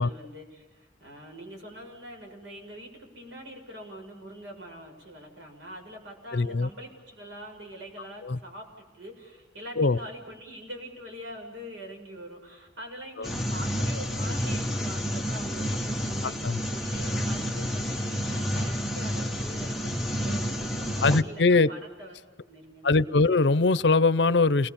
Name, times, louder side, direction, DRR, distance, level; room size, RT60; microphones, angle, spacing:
voice 1, 0.0-22.2 22.5-23.4, equal, 90° right, 2 dB, 7.3 m, -44 dB
voice 2, 6.3-6.7 8.2-8.4 9.8-10.0 13.2-13.3 16.2-16.6 21.0-21.7 22.8-24.7, left 3 dB, 70° left, 17 dB, 0.7 m, -22 dB
sound 1, 13.2-21.2, equal, ahead, 1.4 m, -30 dB
29.5 x 20.5 x 7.2 m, 1.2 s
head